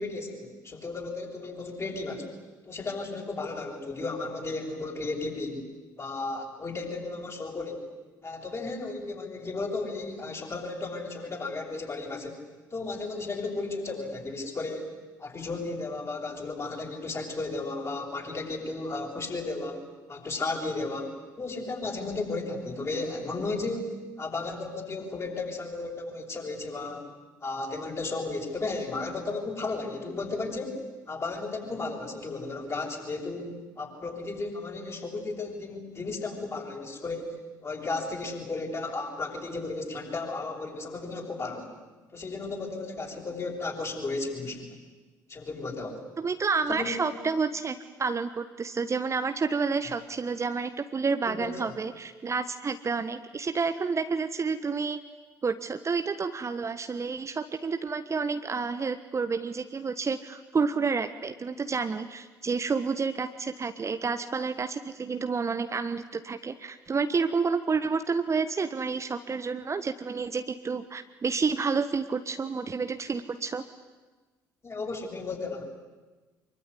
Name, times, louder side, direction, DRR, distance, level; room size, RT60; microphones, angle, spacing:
voice 1, 0.0-2.3 2.6-5.7 6.0-7.9 8.2-12.4 12.7-14.9 15.2-19.8 20.1-27.1 27.4-30.8 31.1-41.7 42.1-44.7 45.3-46.0 46.7-47.0 51.3-51.7 74.6-75.6, left 3 dB, 30° left, 1 dB, 7.2 m, -34 dB
voice 2, 46.2-55.0 55.4-73.6, right 5 dB, 30° right, 9 dB, 1.4 m, -29 dB
25.0 x 23.5 x 9.9 m, 1.3 s
figure-of-eight pair, 50°, 10 cm